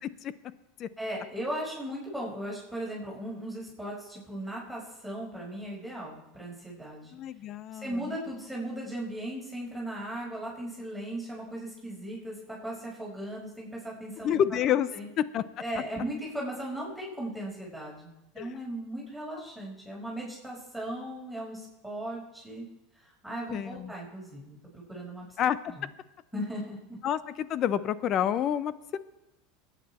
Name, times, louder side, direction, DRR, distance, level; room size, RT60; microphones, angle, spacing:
voice 1, 0.0-0.3 0.8-0.9 7.1-8.2 14.2-14.9 15.2-15.4 18.4-18.5 23.5-23.9 25.4-25.6 27.0-29.0, left 10 dB, 45° left, 16 dB, 0.8 m, -28 dB
voice 2, 1.0-7.2 7.7-14.4 14.9-15.1 15.6-22.6 23.0-25.3 25.7-25.9 26.3-27.0, right 1 dB, ahead, -5 dB, 5.4 m, -37 dB
22.5 x 9.3 x 4.4 m, 0.93 s
hypercardioid pair, 90°, 0 cm